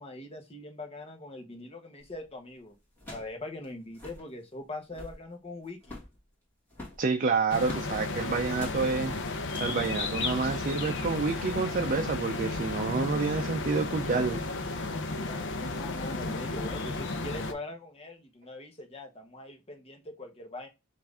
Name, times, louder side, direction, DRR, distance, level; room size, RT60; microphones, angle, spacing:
voice 1, 0.0-2.7 3.1-6.0 15.1-20.7, left 2 dB, 30° left, 1.1 m, -42 dB
sound 1, 2.0-2.3 3.0-3.4 3.6-3.7 3.9-4.3 4.8-5.2 5.8-6.2 6.7-7.9 8.5-8.8 9.4-9.8 10.3-10.5, left 2 dB, 10° left, 1.9 m, -44 dB
voice 2, 7.0-9.1 9.6-14.4, right 4 dB, 40° right, 0.4 m, -28 dB
sound 2, 7.5-17.5, left 3 dB, 60° left, 0.7 m, -33 dB
5.8 x 2.6 x 3.4 m
head